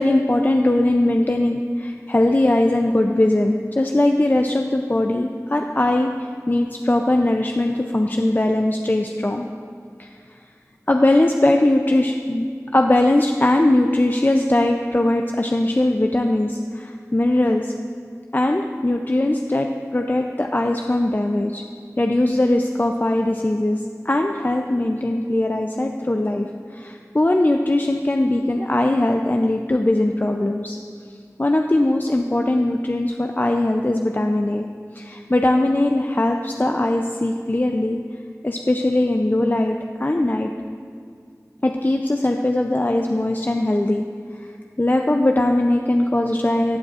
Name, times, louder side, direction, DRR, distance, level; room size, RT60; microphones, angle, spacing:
voice 1, 0.0-9.5 10.0-10.1 10.9-17.7 18.3-21.6 22.0-23.8 24.0-26.5 26.7-30.8 31.4-34.7 35.0-38.0 38.4-40.5 41.6-44.0 44.8-46.8, left 1 dB, 35° left, 3 dB, 0.4 m, -20 dB
15.0 x 8.9 x 2.4 m, 2.1 s
wide cardioid pair, 40°, 6 cm